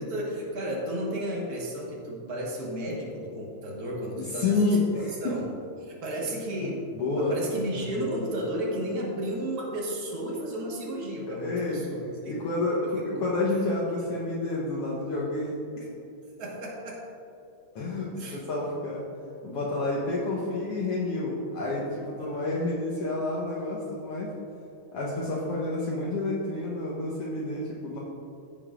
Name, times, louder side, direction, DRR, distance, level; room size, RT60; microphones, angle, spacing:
voice 1, 0.0-5.5 5.8-6.8 7.1-12.4 12.8-13.2 13.5-13.6 14.0-14.1 16.4-17.1 18.2-18.4 22.2-22.4, right 1 dB, 55° right, -3 dB, 1.0 m, -33 dB
voice 2, 4.1-5.2 6.9-7.4 7.8-7.9 11.3-15.9 17.7-19.0 19.4-24.3 24.9-28.0, left 2 dB, 70° left, -5 dB, 1.4 m, -29 dB
15.5 x 6.8 x 2.5 m, 2.8 s
omnidirectional pair, 4.0 m